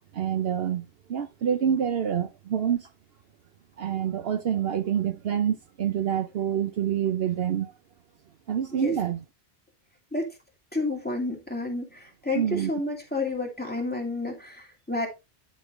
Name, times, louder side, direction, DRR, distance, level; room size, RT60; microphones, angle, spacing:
voice 1, 0.1-2.9 3.8-7.7 8.5-9.2 12.3-12.7, right 9 dB, 65° right, 0.9 m, -27 dB
voice 2, 10.7-11.9 12.2-15.1, left 2 dB, 10° left, 2.6 m, -30 dB
11.5 x 5.4 x 3.2 m
omnidirectional pair, 1.1 m